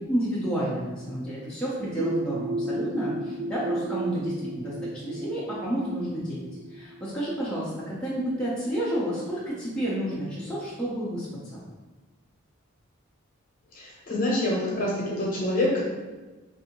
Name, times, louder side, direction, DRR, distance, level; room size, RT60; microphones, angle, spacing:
voice 1, 0.1-4.7 5.0-6.4 6.7-11.3 11.5-11.6, right 1 dB, 5° left, -10 dB, 0.5 m, -30 dB
sound 1, 2.0-7.5, right 1 dB, 60° right, 0.4 m, -33 dB
voice 2, 13.7-15.8, left 1 dB, 40° left, -4 dB, 0.9 m, -26 dB
3.5 x 2.7 x 2.9 m, 1.2 s
head